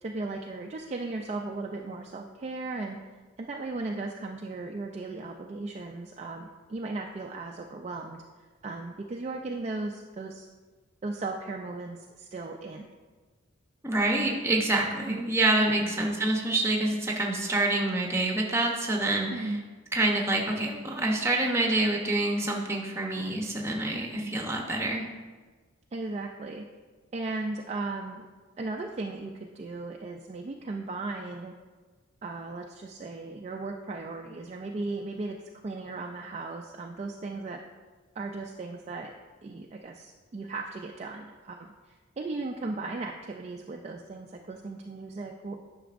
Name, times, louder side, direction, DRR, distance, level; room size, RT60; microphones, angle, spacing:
voice 1, 0.0-3.0 3.4-8.2 8.6-10.5 11.0-12.9 15.1-15.2 15.7-15.9 19.3-19.6 24.1-24.3 25.9-26.6 27.1-28.3 28.6-31.5 32.2-35.4 35.6-37.6 38.2-39.1 39.4-41.7 42.2-45.6, right 3 dB, 30° right, 1 dB, 0.3 m, -36 dB
voice 2, 13.8-19.5 19.9-25.1, right 2 dB, 15° right, 0 dB, 0.8 m, -27 dB
10.0 x 6.0 x 2.5 m, 1.4 s
head